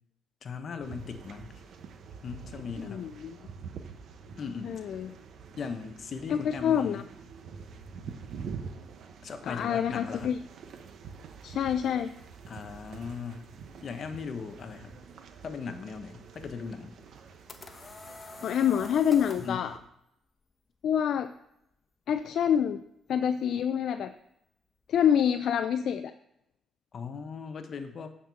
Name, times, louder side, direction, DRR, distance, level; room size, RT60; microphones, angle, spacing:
voice 1, 0.4-1.6 2.2-3.1 4.4-4.7 5.6-7.1 9.2-10.3 12.5-13.5 13.8-15.0 15.4-17.0 19.4-19.6 26.9-28.1, left 5 dB, 50° left, 7 dB, 1.1 m, -38 dB
sound 1, 0.8-19.8, right 5 dB, 70° right, 0.9 m, -46 dB
voice 2, 2.8-3.4 4.6-5.1 6.3-7.0 9.4-10.4 11.4-12.1 18.4-19.8 20.8-21.3 22.1-22.8 23.1-24.1 24.9-26.1, left 9 dB, 70° left, 9 dB, 0.4 m, -27 dB
sound 2, 17.1-19.6, left 3 dB, 30° left, 1.0 m, -45 dB
9.3 x 4.4 x 6.9 m, 0.80 s
cardioid pair, 90°, 0 cm